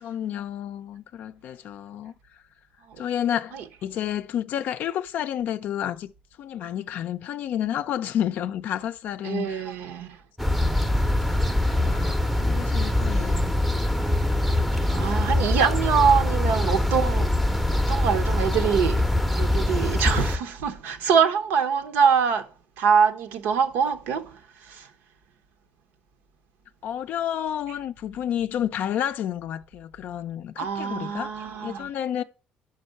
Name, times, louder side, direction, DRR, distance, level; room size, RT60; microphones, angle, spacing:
voice 1, 0.0-2.1 3.0-6.1 6.4-9.6 11.7-13.5 26.8-31.3 31.6-32.2, left 10 dB, 60° left, 0.4 m, -30 dB
voice 2, 9.2-10.2 14.4-17.3 17.7-19.1 19.4-22.5 22.8-24.9 30.6-31.9, right 6 dB, 85° right, 0.9 m, -24 dB
sound 1, 10.4-20.4, left 1 dB, ahead, 0.6 m, -23 dB
5.4 x 5.1 x 6.4 m
cardioid pair, 115°, 3 cm